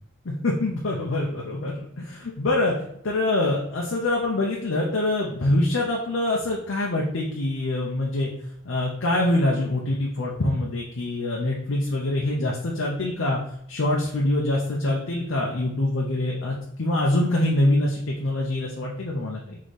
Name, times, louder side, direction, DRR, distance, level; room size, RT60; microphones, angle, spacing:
voice 1, 0.3-2.7 3.0-8.3 8.6-13.4 13.7-19.6, left 1 dB, 70° left, -2 dB, 0.6 m, -25 dB
4.2 x 3.6 x 3.2 m, 0.72 s
head